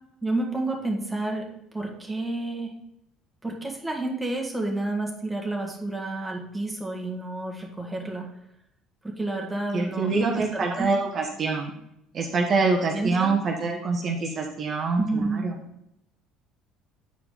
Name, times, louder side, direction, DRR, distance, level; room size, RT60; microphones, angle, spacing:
voice 1, 0.2-1.5 1.7-2.8 3.4-8.3 9.0-10.9 12.9-13.3 15.0-15.4, right 2 dB, 10° right, 0 dB, 1.8 m, -30 dB
voice 2, 9.7-11.7 12.1-15.5, right 4 dB, 45° right, 1 dB, 1.0 m, -25 dB
8.3 x 4.7 x 3.8 m, 0.78 s
hypercardioid pair, 60°, 0 cm